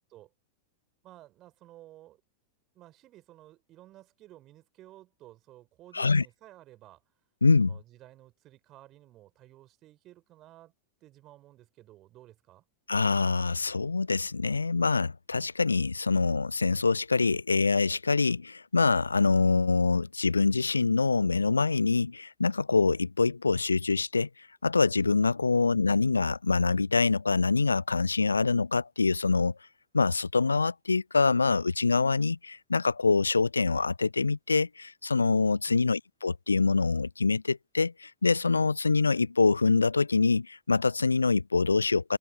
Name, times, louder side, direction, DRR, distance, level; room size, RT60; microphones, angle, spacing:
voice 1, 1.0-2.2 2.7-7.0 7.6-10.7 11.0-12.6 25.5-25.8 35.7-36.0, right 15 dB, 35° right, 4.5 m, -54 dB
voice 2, 7.4-7.7 12.9-24.3 24.6-29.5 29.9-42.2, left 4 dB, 80° left, 0.4 m, -25 dB
open air
figure-of-eight pair, 90°, 0 cm